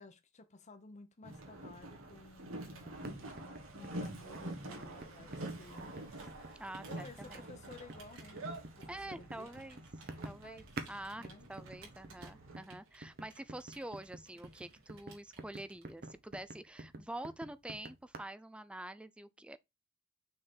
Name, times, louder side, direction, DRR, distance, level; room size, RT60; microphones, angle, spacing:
voice 1, 0.0-6.3 6.9-8.5 8.8-9.6 10.4-10.9 11.2-11.5 12.4-12.7, left 3 dB, 35° left, 0.8 m, -55 dB
Boat Water vehicle, 1.2-12.6, right 1 dB, 85° right, 1.8 m, -47 dB
sound 1, 2.9-11.0 11.2-18.2, right 2 dB, 50° right, 1.1 m, -48 dB
Computer keyboard, 6.0-16.3, right 4 dB, 65° right, 2.6 m, -61 dB
voice 2, 6.6-7.5 8.9-19.6, right 1 dB, 5° right, 0.4 m, -47 dB
6.1 x 3.9 x 4.5 m
head